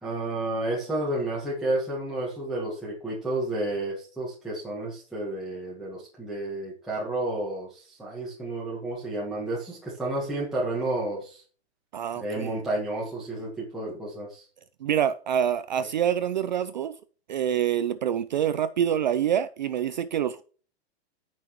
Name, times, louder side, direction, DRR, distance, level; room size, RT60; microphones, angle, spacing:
voice 1, 0.0-11.4 12.2-14.4, right 2 dB, ahead, 1.4 m, -31 dB
voice 2, 11.9-12.5 14.8-16.9 17.3-20.4, right 9 dB, 45° right, 0.4 m, -26 dB
14.5 x 6.1 x 3.1 m
hypercardioid pair, 175°, 34 cm